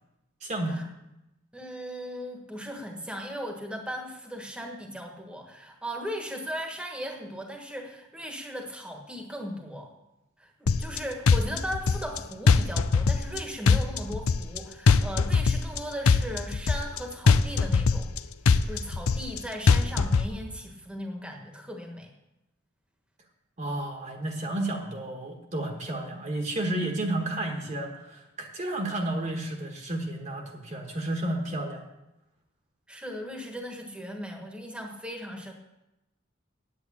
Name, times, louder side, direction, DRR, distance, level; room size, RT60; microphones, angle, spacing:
voice 1, 0.4-0.8 23.6-31.8, right 1 dB, 35° right, 2 dB, 1.3 m, -31 dB
voice 2, 1.5-9.9 10.4-18.1 18.5-22.1 32.9-35.5, equal, 5° right, 2 dB, 1.4 m, -37 dB
sound 1, 10.7-11.0 11.3-12.2 12.5-13.4 13.7-14.6 14.9-15.8 16.1-17.0 17.3-18.2 18.5-19.4 19.7-20.3, left 4 dB, 85° left, 0.6 m, -21 dB
9.3 x 8.5 x 8.6 m, 0.94 s
head